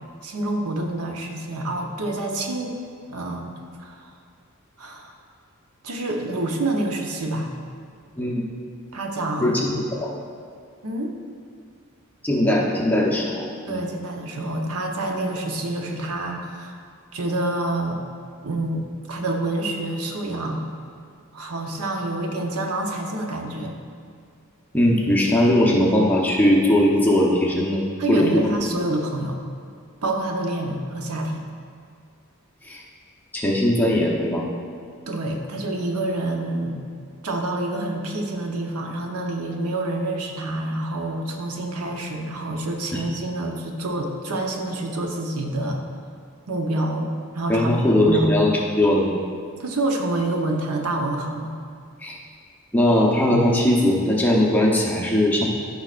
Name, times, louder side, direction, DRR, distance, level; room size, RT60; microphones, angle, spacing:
voice 1, 0.2-2.7 3.1-3.5 3.8-4.1 4.8-5.1 5.8-7.5 8.9-9.6 10.8-11.1 13.7-16.8 17.1-18.0 18.4-20.6 21.3-23.8 28.0-29.4 30.0-31.4 35.1-36.9 37.2-45.8 46.5-48.4 49.6-51.6, right 2 dB, 85° right, 2 dB, 0.8 m, -27 dB
voice 2, 9.4-10.1 12.2-13.8 24.7-27.8 28.1-28.3 32.6-32.8 33.3-34.5 42.9-43.0 47.5-49.1 52.0-52.2 52.7-55.4, left 1 dB, 10° left, -3 dB, 0.8 m, -19 dB
13.0 x 5.6 x 2.5 m, 2.2 s
head